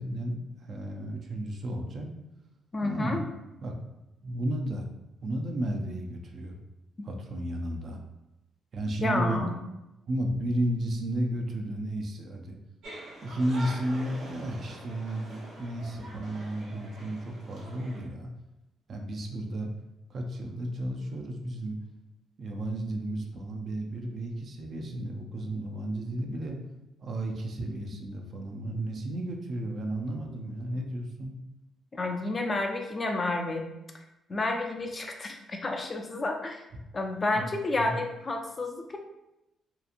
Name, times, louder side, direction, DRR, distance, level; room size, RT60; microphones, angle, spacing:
voice 1, 0.0-2.1 2.8-3.2 3.6-3.7 4.2-4.9 5.2-6.6 7.0-8.0 8.7-9.4 10.1-12.6 13.2-18.3 18.9-19.7 20.1-21.8 22.4-26.6 27.0-31.4 37.4-37.5 37.8-37.9, right 1 dB, 55° right, 2 dB, 0.4 m, -33 dB
voice 2, 2.7-3.2 9.0-9.6 31.9-33.7 33.9-34.0 34.3-36.6 36.9-39.0, left 2 dB, 30° left, 3 dB, 0.4 m, -30 dB
sound 1, 12.8-18.0, right 1 dB, 80° right, 1.0 m, -45 dB
2.8 x 2.4 x 2.5 m, 0.92 s
cardioid pair, 90°, 0 cm